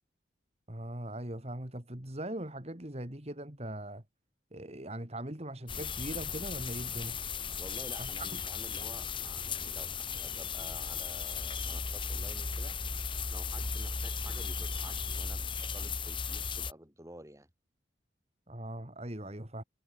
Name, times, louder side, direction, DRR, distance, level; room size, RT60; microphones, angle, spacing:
voice 1, 0.7-4.0 4.5-7.2 8.0-8.4 18.5-19.6, right 1 dB, 35° right, 2.8 m, -40 dB
sound 1, 5.7-16.7, left 5 dB, 25° left, 1.8 m, -36 dB
voice 2, 7.6-9.9 10.2-12.8 13.3-17.5, right 1 dB, 15° right, 4.6 m, -51 dB
head